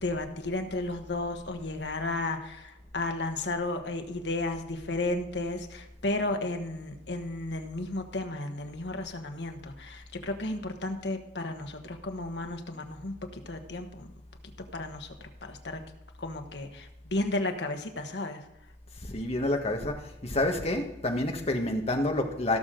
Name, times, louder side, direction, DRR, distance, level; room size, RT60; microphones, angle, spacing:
voice 1, 0.0-14.1 14.7-15.8 16.2-18.4, left 2 dB, 75° left, 5 dB, 1.3 m, -33 dB
voice 2, 19.1-20.0 20.2-22.6, left 1 dB, 35° left, 3 dB, 1.4 m, -28 dB
17.0 x 6.8 x 3.8 m, 0.94 s
head